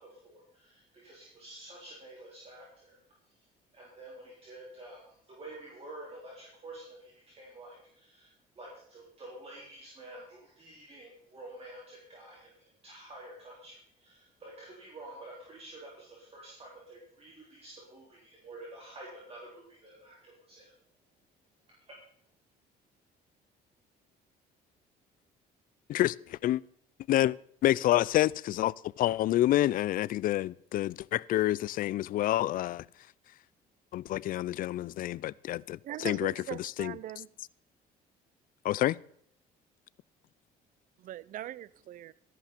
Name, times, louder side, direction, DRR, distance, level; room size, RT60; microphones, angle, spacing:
voice 1, 0.0-3.0 3.3-3.4 3.7-20.7, right 1 dB, 35° right, 4.1 m, -49 dB
voice 2, 25.9-26.6 27.1-27.4 27.6-32.8 33.9-36.3 36.8-36.9 38.6-39.0, left 14 dB, 55° left, 0.4 m, -28 dB
voice 3, 35.8-37.3 41.0-42.1, right 13 dB, 55° right, 0.4 m, -40 dB
13.5 x 11.0 x 4.4 m
cardioid pair, 110°, 17 cm